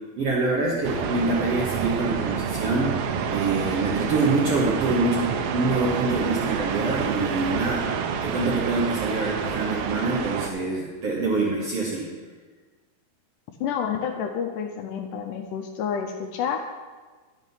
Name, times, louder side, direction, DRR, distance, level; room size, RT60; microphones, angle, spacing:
voice 1, 0.2-12.0, right 3 dB, 60° right, -3 dB, 1.6 m, -25 dB
sound 1, 0.8-10.5, right 6 dB, 85° right, 2.6 m, -28 dB
voice 2, 13.6-16.6, left 7 dB, 80° left, 3 dB, 2.0 m, -29 dB
10.5 x 6.3 x 5.6 m, 1.4 s
omnidirectional pair, 4.1 m